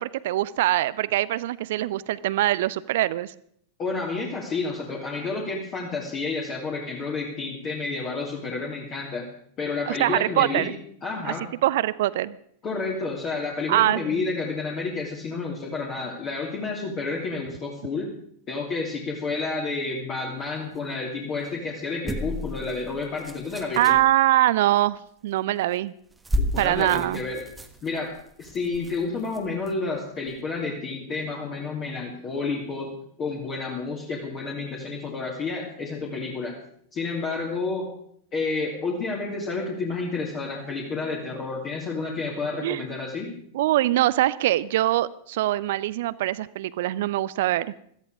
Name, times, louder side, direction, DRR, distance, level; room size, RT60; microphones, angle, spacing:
voice 1, 0.0-3.3 9.9-10.7 11.2-11.3 11.6-12.3 13.7-14.2 23.8-25.0 25.2-25.9 26.6-27.2 42.6-42.8 43.5-47.7, right 15 dB, 55° right, 19 dB, 0.6 m, -23 dB
voice 2, 3.8-9.3 9.6-10.7 11.0-11.4 12.6-18.1 18.5-24.0 26.5-27.4 27.8-28.1 28.4-32.9 33.2-36.6 36.9-37.9 38.3-43.4, left 3 dB, 30° left, -2 dB, 2.8 m, -30 dB
sound 1, 22.0-24.1 25.6-25.8 26.1-29.7 30.3-30.4, left 1 dB, 10° right, 1.4 m, -33 dB
16.5 x 14.0 x 4.8 m, 0.65 s
figure-of-eight pair, 90°, 0 cm